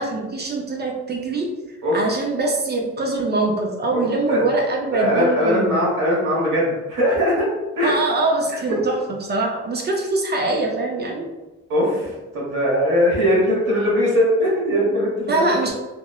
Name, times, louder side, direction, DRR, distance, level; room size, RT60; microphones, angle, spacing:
voice 1, 0.0-1.5 1.9-5.8 7.8-8.9 9.2-11.3 15.3-15.7, right 2 dB, 35° right, 0 dB, 0.5 m, -23 dB
voice 2, 3.9-4.5 4.9-7.5 7.8-8.0 8.7-8.8 11.7-15.4, equal, 85° right, -5 dB, 1.1 m, -20 dB
2.9 x 2.0 x 2.3 m, 1.1 s
cardioid pair, 90°, 30 cm